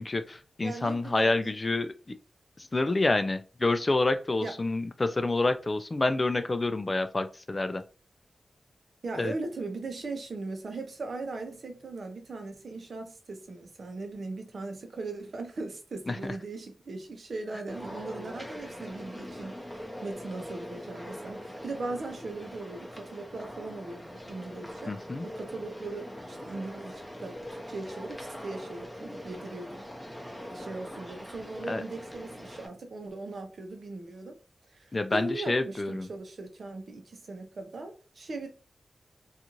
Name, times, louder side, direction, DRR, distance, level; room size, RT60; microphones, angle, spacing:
voice 1, 0.0-2.2 2.6-7.8 9.2-9.3 16.1-16.4 24.9-25.3 31.7-31.8 34.9-36.1, left 2 dB, 35° left, 0.3 m, -28 dB
voice 2, 0.6-1.5 4.4-4.6 9.0-24.9 25.2-29.8 30.4-34.4 34.7-38.5, right 3 dB, 70° right, 0.6 m, -39 dB
sound 1, 17.7-32.7, equal, ahead, 0.7 m, -42 dB
2.5 x 2.4 x 2.9 m
cardioid pair, 65°, 0 cm